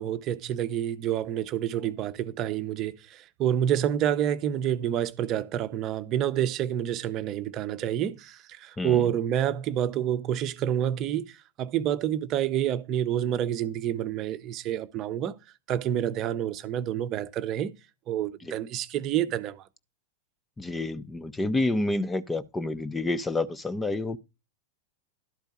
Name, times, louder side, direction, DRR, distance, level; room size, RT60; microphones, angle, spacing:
voice 1, 0.0-15.4 15.7-17.7 18.1-19.6, right 10 dB, 35° right, 0.8 m, -28 dB
voice 2, 20.6-24.2, left 2 dB, 10° left, 0.7 m, -29 dB
12.0 x 4.5 x 5.3 m
figure-of-eight pair, 90°, 0 cm